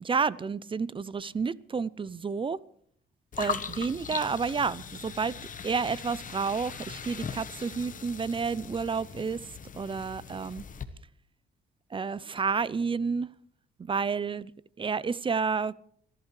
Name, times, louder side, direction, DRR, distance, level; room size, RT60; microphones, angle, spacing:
voice 1, 0.0-2.6 3.4-5.4 5.6-10.7 11.9-13.3 13.8-14.5 14.8-15.7, right 5 dB, 25° right, 0.5 m, -30 dB
sound 1, 3.3-10.8, left 6 dB, 40° left, 1.1 m, -39 dB
30.0 x 11.5 x 3.3 m
cardioid pair, 90°, 20 cm